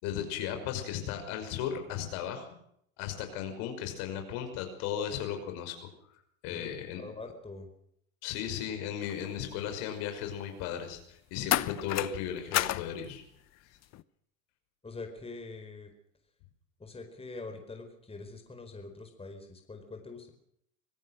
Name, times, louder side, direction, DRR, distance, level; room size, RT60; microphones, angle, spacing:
voice 1, 0.0-2.5 3.0-5.9 6.4-7.0 8.2-13.2 13.5-13.7, left 9 dB, 65° left, 6 dB, 5.8 m, -36 dB
voice 2, 6.5-7.7 14.8-15.9 16.8-20.3, left 3 dB, 15° left, 5 dB, 4.6 m, -44 dB
sound 1, 9.0-9.4 11.5-12.2 12.5-12.9 13.8-14.0, left 14 dB, 40° left, 1.0 m, -30 dB
25.0 x 17.0 x 6.5 m, 0.70 s
hypercardioid pair, 100°, 41 cm